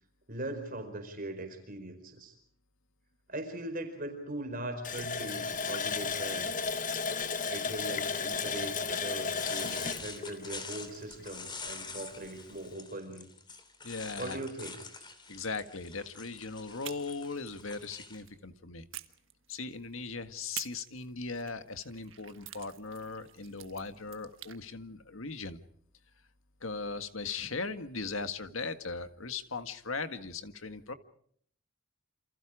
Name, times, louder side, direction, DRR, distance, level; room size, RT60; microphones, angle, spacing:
voice 1, 0.3-2.4 3.3-6.5 7.5-13.3 14.2-14.8, right 1 dB, 40° right, 6 dB, 4.6 m, -40 dB
Water tap faucet, 4.8-11.3 11.7-11.8 12.2-12.4, left 5 dB, 35° left, 1.0 m, -34 dB
sound 1, 9.4-18.2, left 4 dB, 20° left, 3.2 m, -46 dB
voice 2, 13.8-14.4 15.3-18.9 19.5-25.6 26.6-30.9, left 4 dB, 70° left, 9 dB, 1.8 m, -38 dB
sound 2, 16.8-18.4 18.9-19.9 20.5-24.6, right 13 dB, 60° right, 1.5 m, -48 dB
28.5 x 27.5 x 5.0 m, 0.62 s
head